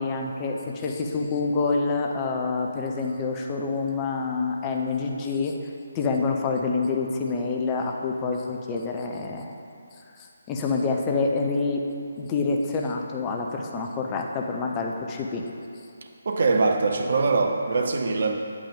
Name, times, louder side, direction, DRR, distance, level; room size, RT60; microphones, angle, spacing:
voice 1, 0.0-5.5 5.9-9.6 10.2-11.8 12.2-15.4, left 4 dB, 20° left, 1 dB, 0.6 m, -27 dB
voice 2, 16.2-18.3, right 3 dB, 50° right, 4 dB, 0.7 m, -22 dB
8.6 x 8.1 x 3.7 m, 2.5 s
figure-of-eight pair, 145°, 0 cm